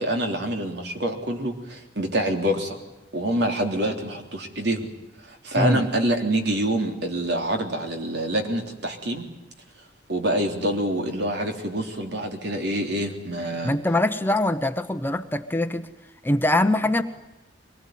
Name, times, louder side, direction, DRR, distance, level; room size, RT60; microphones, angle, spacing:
voice 1, 0.0-2.8 3.1-4.9 5.3-9.2 10.1-13.8, right 1 dB, 65° right, 4 dB, 3.5 m, -26 dB
voice 2, 13.6-15.9 16.2-17.0, left 1 dB, 10° left, 9 dB, 0.9 m, -23 dB
23.5 x 19.5 x 9.4 m, 1.0 s
head